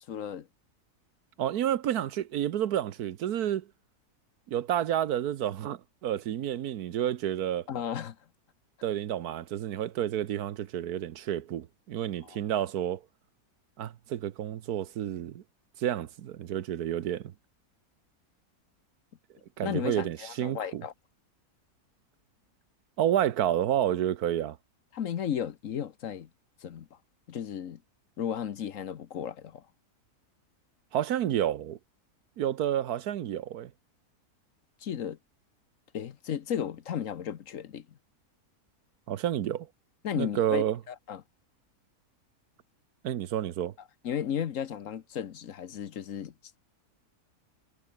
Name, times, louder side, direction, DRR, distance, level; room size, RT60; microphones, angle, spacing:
voice 1, 0.1-0.5 7.7-8.2 12.2-12.4 19.6-20.9 24.9-26.3 26.6-26.9 27.3-27.8 28.2-29.6 34.8-35.2 35.9-37.9 40.0-41.2 44.0-46.3, left 9 dB, 60° left, 1.2 m, -34 dB
voice 2, 1.4-3.7 4.5-7.7 8.8-13.0 13.8-15.4 15.8-17.3 19.6-20.8 23.0-24.6 30.9-31.8 32.4-33.7 39.1-39.7 40.1-40.8 43.0-43.7, right 11 dB, 75° right, 1.4 m, -30 dB
omnidirectional pair, 1.6 m